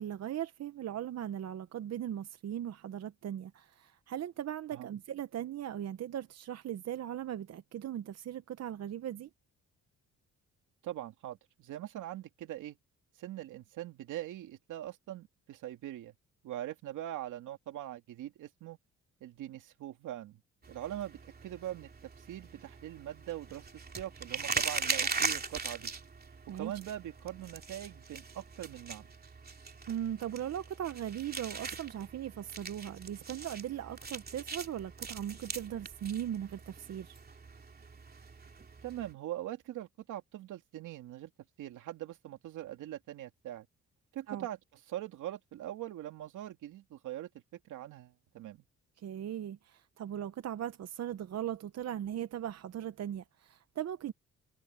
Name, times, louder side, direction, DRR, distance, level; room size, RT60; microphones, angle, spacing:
voice 1, 0.0-9.3 26.5-26.7 29.9-37.2 44.3-44.5 49.0-54.1, right 10 dB, 55° right, 0.9 m, -39 dB
voice 2, 10.8-12.8 13.2-16.1 16.4-18.8 19.2-20.4 20.7-23.7 23.9-25.9 26.5-29.1 38.8-41.3 41.6-43.7 44.1-44.6 44.9-48.6, right 13 dB, 80° right, 2.5 m, -42 dB
sound 1, 20.6-39.1, right 4 dB, 30° right, 3.0 m, -40 dB
cardioid pair, 90°, 30 cm